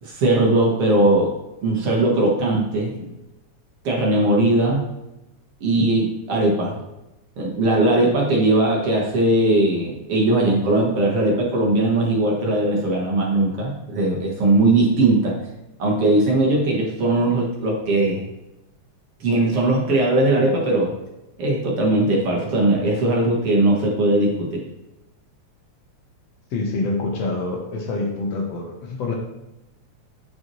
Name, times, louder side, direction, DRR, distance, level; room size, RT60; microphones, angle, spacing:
voice 1, 0.0-1.3 1.6-3.0 3.8-4.8 5.6-6.8 7.4-15.3 15.8-18.3 19.2-20.9 21.4-24.6, right 2 dB, 55° right, -2 dB, 2.2 m, -19 dB
voice 2, 26.5-29.1, left 3 dB, 65° left, 0 dB, 2.1 m, -26 dB
9.4 x 6.1 x 3.1 m, 0.94 s
omnidirectional pair, 3.4 m